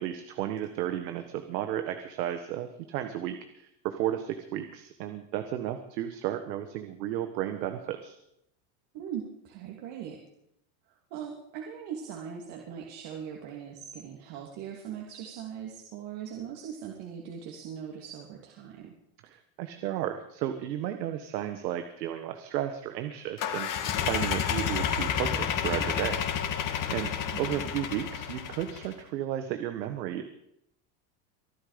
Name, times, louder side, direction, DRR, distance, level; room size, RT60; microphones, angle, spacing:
voice 1, 0.0-8.2 19.2-26.2 26.9-27.1 27.4-30.3, right 11 dB, 85° right, 8 dB, 1.6 m, -33 dB
voice 2, 8.9-10.2 10.9-18.9 27.5-27.7, right 8 dB, 55° right, -1 dB, 3.2 m, -40 dB
sound 1, 23.4-28.9, left 8 dB, 40° left, 2.4 m, -30 dB
24.0 x 11.5 x 5.2 m, 0.77 s
supercardioid pair, 140°, 49 cm